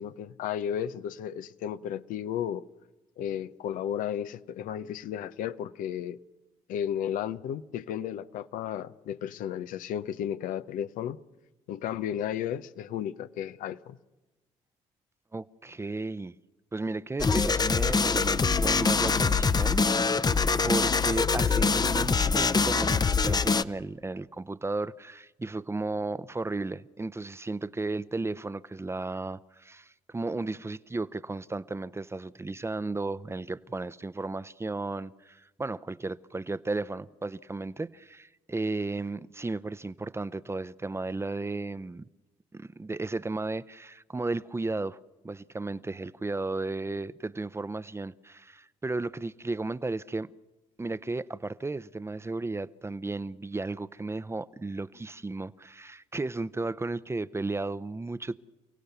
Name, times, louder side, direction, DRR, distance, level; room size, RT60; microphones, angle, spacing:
voice 1, 0.0-2.6 3.2-6.2 6.7-11.2 11.7-14.0, left 10 dB, 75° left, 0.7 m, -33 dB
voice 2, 15.3-16.3 16.7-42.0 42.5-45.0 45.2-50.3 50.8-58.3, right 3 dB, 20° right, 0.7 m, -34 dB
sound 1, 17.2-23.6, left 4 dB, 30° left, 0.8 m, -24 dB
29.0 x 17.0 x 6.9 m
supercardioid pair, 60°, 14 cm